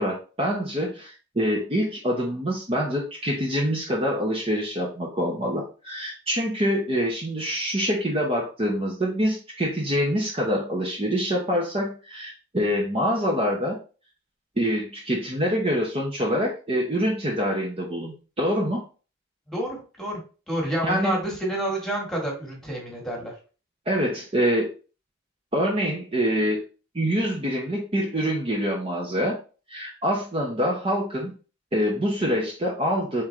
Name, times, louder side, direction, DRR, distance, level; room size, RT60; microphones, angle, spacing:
voice 1, 0.0-13.8 14.6-18.8 20.8-21.2 23.9-24.7 25.5-26.6 26.9-29.4 29.7-31.3 31.7-33.2, equal, 30° right, -2 dB, 0.9 m, -25 dB
voice 2, 19.5-20.2 20.5-23.3, right 1 dB, ahead, -2 dB, 1.6 m, -29 dB
4.4 x 3.7 x 3.3 m, 0.35 s
head